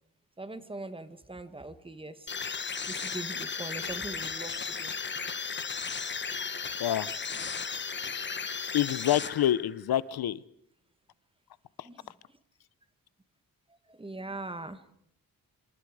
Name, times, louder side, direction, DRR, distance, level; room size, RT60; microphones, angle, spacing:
voice 1, 0.4-2.3 2.9-4.9 11.8-12.1 13.7-14.8, right 2 dB, 15° right, 12 dB, 1.4 m, -41 dB
sound 1, 2.3-9.8, left 5 dB, 30° left, 1.1 m, -35 dB
voice 2, 6.8-7.1 8.7-10.4 11.8-11.9, left 11 dB, 85° left, 19 dB, 0.9 m, -27 dB
27.0 x 26.5 x 4.9 m, 0.71 s
wide cardioid pair, 155°, 36 cm